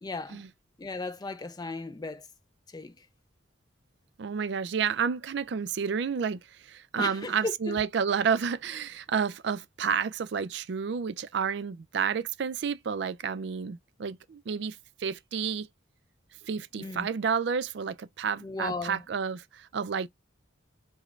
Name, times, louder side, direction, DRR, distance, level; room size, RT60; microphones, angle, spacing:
voice 1, 0.0-0.4 0.8-2.3 2.7-3.1 7.0-7.8 16.8-17.1 18.4-19.0, left 3 dB, 20° left, 0.3 m, -36 dB
voice 2, 4.2-15.7 16.4-20.1, right 6 dB, 60° right, 0.4 m, -30 dB
5.0 x 2.1 x 2.4 m
head